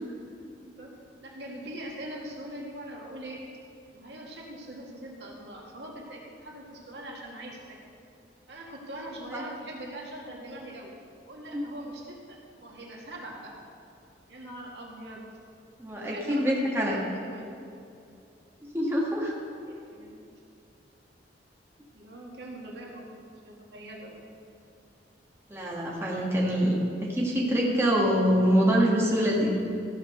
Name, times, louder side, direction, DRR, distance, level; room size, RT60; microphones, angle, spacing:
voice 1, 0.6-0.9 1.2-3.4 3.9-7.8 8.5-10.9 11.3-13.5 14.3-15.3 16.0-17.4 17.7-17.8 19.6-20.2 21.9-23.0 23.4-24.2, right 1 dB, 75° right, -2 dB, 1.9 m, -42 dB
voice 2, 15.8-17.0 18.7-19.3 25.5-29.5, equal, 15° right, -4 dB, 1.7 m, -25 dB
14.0 x 5.9 x 6.4 m, 2.5 s
head